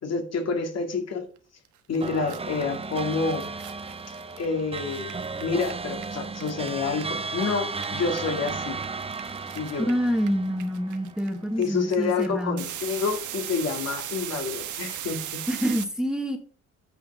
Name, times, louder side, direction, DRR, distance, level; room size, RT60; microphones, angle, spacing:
voice 1, 0.0-1.3 1.9-3.5 4.4-5.1 5.4-8.8 9.5-9.9 11.6-15.4, left 4 dB, 55° left, 4 dB, 2.4 m, -28 dB
sound 1, 1.7-1.8 1.9-7.4 7.7-15.8, right 11 dB, 80° right, 1.3 m, -38 dB
sound 2, 2.0-11.6, right 4 dB, 20° right, 0.7 m, -35 dB
voice 2, 9.8-12.6 15.5-16.4, equal, ahead, 5 dB, 1.5 m, -27 dB
9.1 x 5.7 x 5.5 m, 0.40 s
cardioid pair, 90°, 30 cm